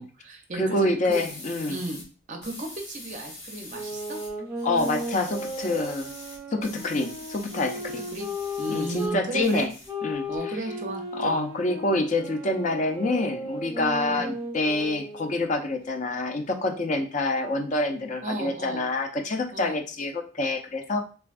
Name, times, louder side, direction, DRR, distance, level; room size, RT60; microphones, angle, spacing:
voice 1, 0.0-1.2 1.7-2.0 2.3-4.2 8.1-8.3 8.6-9.7 10.3-11.4 14.0-14.2 18.2-18.9 19.5-19.8, right 2 dB, 35° right, 3 dB, 0.5 m, -34 dB
voice 2, 0.5-1.8 4.6-6.1 6.5-8.0 8.7-9.7 10.0-10.5 11.1-21.0, left 2 dB, 35° left, 4 dB, 0.4 m, -27 dB
sound 1, 1.1-2.1 2.4-4.3 4.6-9.1 9.4-10.4, left 2 dB, 90° left, 1.3 m, -44 dB
sound 2, 3.7-9.2 9.8-15.4, equal, 15° right, 1.0 m, -35 dB
3.3 x 2.2 x 2.4 m, 0.37 s
head